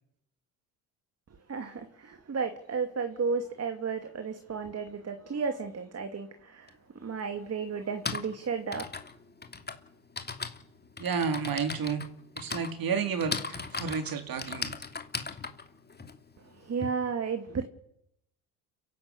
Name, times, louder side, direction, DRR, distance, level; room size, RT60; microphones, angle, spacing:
voice 1, 1.5-8.8 16.4-17.6, right 5 dB, 35° right, 2.6 m, -33 dB
Typing, 6.7-6.8 7.7-16.9, left 4 dB, 20° left, 3.0 m, -38 dB
voice 2, 11.0-12.1 12.4-14.7, right 6 dB, 50° right, 4.1 m, -31 dB
30.0 x 11.5 x 8.5 m
supercardioid pair, 75°, 44 cm